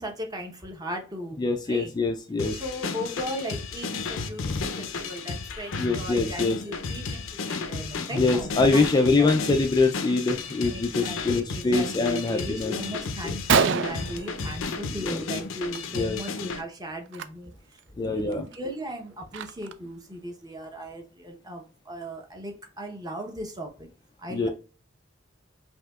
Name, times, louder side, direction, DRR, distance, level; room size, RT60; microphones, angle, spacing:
voice 1, 0.0-1.4 1.6-1.9 2.5-8.9 9.2-9.3 10.7-17.5 17.9-23.9 24.2-24.5, equal, 20° right, 3 dB, 0.8 m, -37 dB
voice 2, 1.4-2.6 5.8-6.6 8.1-12.7 13.2-13.3 15.0-15.2 15.9-16.2 18.0-18.5 24.3-24.5, left 3 dB, 20° left, 4 dB, 0.3 m, -24 dB
sound 1, 2.4-16.6, left 4 dB, 80° left, 0.6 m, -33 dB
Gunshot gunfire, 13.5-15.1 15.4-16.3 17.1-17.2 17.8-17.9 18.3-19.9, right 6 dB, 65° right, 0.4 m, -27 dB
5.5 x 2.8 x 2.3 m, 0.34 s
head